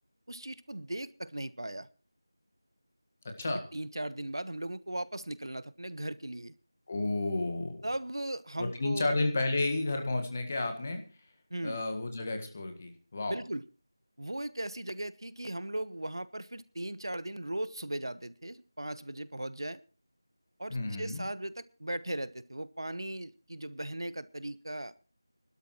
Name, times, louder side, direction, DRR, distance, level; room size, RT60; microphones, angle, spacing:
voice 1, 0.3-1.9 3.4-6.5 7.8-9.1 11.5-11.8 13.3-13.6 14.2-19.8 20.6-24.9, right 1 dB, 85° right, 17 dB, 1.0 m, -38 dB
voice 2, 3.2-3.6 6.9-7.8 8.6-11.0 11.6-13.4 20.7-21.3, left 2 dB, 25° left, 6 dB, 1.6 m, -32 dB
23.5 x 12.5 x 3.1 m, 0.35 s
figure-of-eight pair, 175°, 2 cm